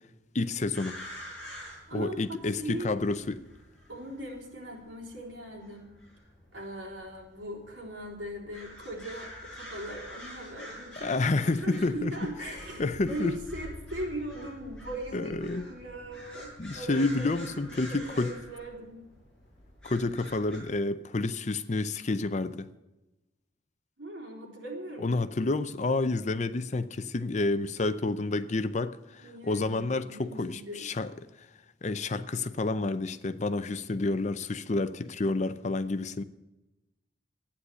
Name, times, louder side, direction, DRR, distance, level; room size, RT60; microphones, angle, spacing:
voice 1, 0.3-1.0 1.9-3.4 11.0-12.1 12.8-13.3 15.1-15.7 16.6-18.3 19.8-22.7 25.0-31.1 31.8-36.2, left 2 dB, 40° left, 0.6 m, -29 dB
sound 1, 0.7-20.6, equal, 5° left, 6.3 m, -47 dB
voice 2, 1.4-3.0 3.9-5.9 6.5-11.2 11.5-19.0 24.0-25.5 29.2-30.9 35.6-35.7, right 1 dB, 80° right, 3.9 m, -40 dB
12.5 x 9.7 x 8.2 m
head